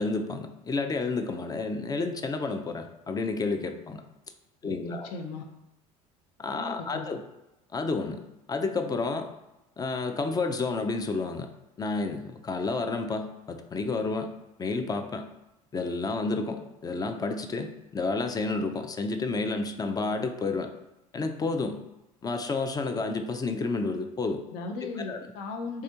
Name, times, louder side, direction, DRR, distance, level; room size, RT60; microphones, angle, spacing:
voice 1, 0.0-4.0 4.6-5.1 6.4-7.2 7.7-8.2 8.5-9.3 9.8-11.5 11.8-14.3 14.6-15.3 15.7-20.7 21.1-21.8 22.2-24.4 24.8-25.2, left 3 dB, 20° left, 7 dB, 0.4 m, -30 dB
voice 2, 4.6-5.4 6.5-7.1 24.5-25.8, left 3 dB, 65° left, 4 dB, 0.6 m, -37 dB
3.5 x 3.2 x 2.8 m, 0.95 s
hypercardioid pair, 70°, 19 cm